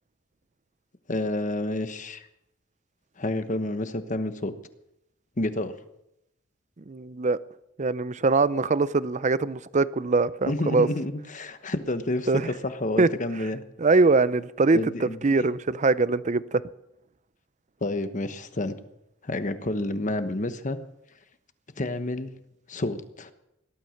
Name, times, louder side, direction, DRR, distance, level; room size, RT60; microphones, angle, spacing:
voice 1, 1.1-2.3 3.2-4.5 5.4-5.7 10.5-13.6 14.7-15.5 17.8-18.7 19.2-20.8 21.8-22.3 22.7-23.3, left 1 dB, 40° left, 10 dB, 1.1 m, -29 dB
voice 2, 6.9-7.4 7.8-10.9 12.3-12.5 13.0-13.1 13.8-16.6, right 3 dB, 35° right, 17 dB, 0.5 m, -22 dB
18.0 x 12.5 x 6.5 m, 0.85 s
head